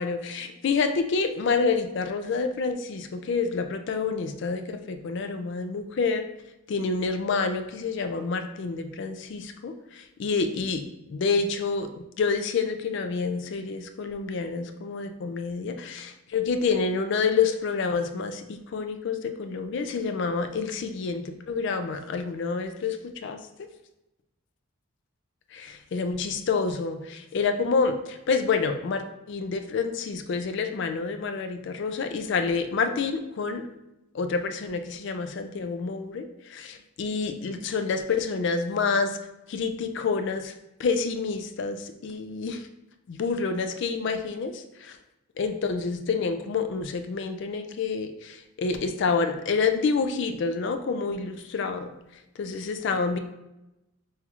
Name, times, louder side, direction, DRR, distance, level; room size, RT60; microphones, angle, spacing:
voice 1, 0.0-6.2 6.7-10.8 11.1-23.7 25.5-33.7 34.1-39.2 39.5-40.5 40.8-42.6 43.1-45.0 45.4-51.9 52.4-53.2, left 4 dB, 55° left, 8 dB, 0.3 m, -28 dB
5.4 x 2.3 x 2.9 m, 0.93 s
head